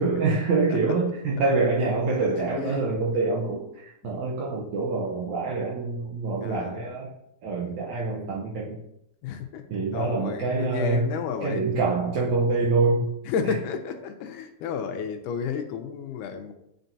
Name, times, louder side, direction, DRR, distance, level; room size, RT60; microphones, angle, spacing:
voice 1, 0.0-7.1 7.4-8.8 9.7-11.1 11.4-13.1, right 3 dB, 75° right, -5 dB, 2.0 m, -25 dB
voice 2, 2.3-2.9 4.0-4.1 6.4-6.8 9.2-9.6 9.9-11.8 13.3-16.5, left 6 dB, 80° left, 6 dB, 2.1 m, -32 dB
10.0 x 4.4 x 2.7 m, 0.79 s
omnidirectional pair, 3.7 m